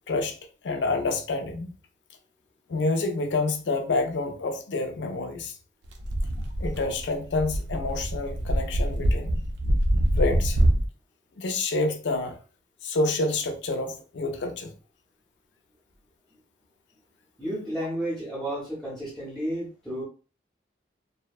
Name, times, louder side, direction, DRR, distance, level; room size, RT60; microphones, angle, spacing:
voice 1, 0.6-1.7 2.7-5.5 6.6-9.4 10.2-10.6 11.4-12.3 12.8-14.7, left 2 dB, 75° left, 0.5 m, -28 dB
sound 1, 5.9-10.9, right 1 dB, 80° right, 0.5 m, -25 dB
voice 2, 17.4-20.0, right 1 dB, ahead, 0.6 m, -32 dB
2.7 x 2.1 x 2.3 m
head